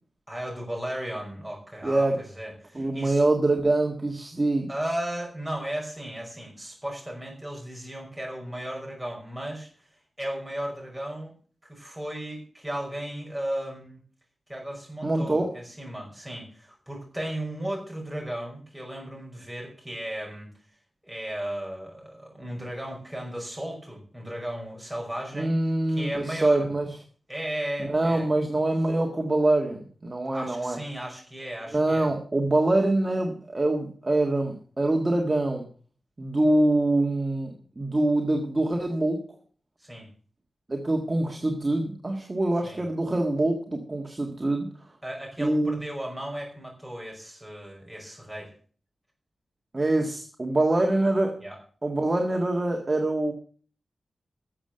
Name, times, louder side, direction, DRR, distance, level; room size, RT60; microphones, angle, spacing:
voice 1, 0.3-3.2 4.7-9.7 10.2-11.3 11.7-14.0 14.5-20.5 21.0-25.5 25.9-26.7 27.3-28.3 30.3-32.1 39.8-40.1 42.6-42.8 45.0-48.5 51.4-51.6, right 1 dB, 5° right, -1 dB, 5.4 m, -35 dB
voice 2, 1.8-2.2 2.7-4.7 15.0-15.5 25.3-26.8 27.8-30.8 31.7-35.6 36.2-39.2 40.7-44.7 45.4-45.8 49.7-51.3 51.8-53.3, right 2 dB, 25° right, 1 dB, 1.6 m, -24 dB
12.5 x 7.3 x 7.7 m, 0.44 s
wide cardioid pair, 150°, 0 cm